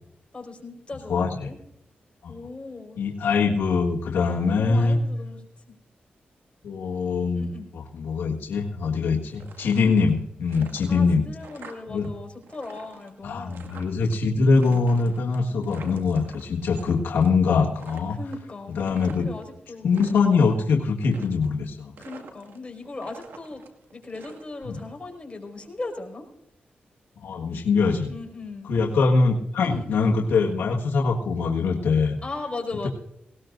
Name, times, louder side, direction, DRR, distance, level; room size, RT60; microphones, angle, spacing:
voice 1, 0.3-1.6 2.3-3.0 4.5-5.8 6.9-7.0 7.3-7.7 9.8-10.0 10.9-13.7 18.1-19.9 22.0-23.6 23.9-26.3 28.1-28.7 29.6-29.9 32.2-32.9, left 3 dB, 30° left, 2 dB, 5.1 m, -38 dB
voice 2, 1.1-1.5 2.2-2.3 3.0-5.0 6.6-11.2 11.9-12.1 13.2-18.2 18.7-19.3 19.8-21.9 24.6-24.8 27.2-28.1 28.7-32.2, left 4 dB, 90° left, -1 dB, 1.6 m, -23 dB
sound 1, 9.3-10.2 10.5-12.1 12.3-14.2 14.6-16.9 17.2-17.5 17.8-19.4 19.8-20.5 21.0-21.6 22.0-22.7 23.0-24.8, right 4 dB, 85° right, 2.1 m, -47 dB
19.5 x 19.0 x 2.6 m, 0.77 s
cardioid pair, 65°, 4 cm